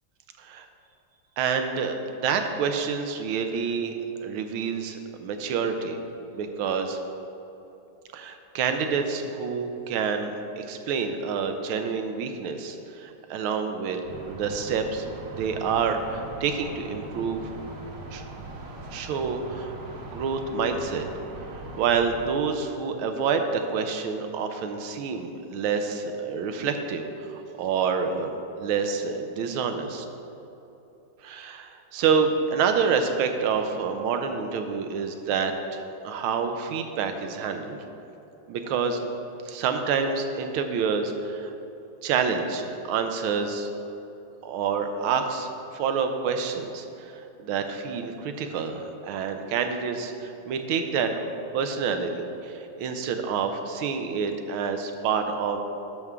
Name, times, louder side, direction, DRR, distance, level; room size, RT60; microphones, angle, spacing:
voice 1, 1.4-3.9 4.2-6.0 6.3-7.0 8.1-15.1 15.4-17.5 18.1-18.2 18.9-19.7 20.1-21.0 21.6-28.3 28.6-30.0 31.2-37.8 38.5-39.0 39.4-41.5 42.0-43.7 44.4-51.1 51.5-55.6, right 6 dB, 90° right, 6 dB, 1.5 m, -28 dB
sound 1, 14.0-22.3, right 2 dB, 50° right, 1.1 m, -40 dB
10.5 x 6.7 x 3.6 m, 2.9 s
omnidirectional pair, 2.2 m